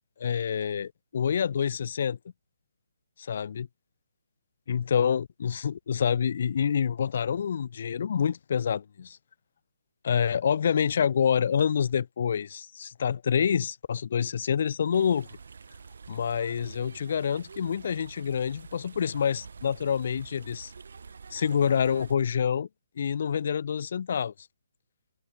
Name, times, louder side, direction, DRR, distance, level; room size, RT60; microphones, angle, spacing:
voice 1, 0.2-2.2 3.2-3.7 4.7-9.2 10.0-15.3 16.1-20.7 21.3-22.7 23.0-24.3, left 7 dB, 45° left, 1.6 m, -27 dB
sound 1, 14.9-22.1, right 5 dB, 65° right, 4.1 m, -47 dB
hypercardioid pair, 170°, 0 cm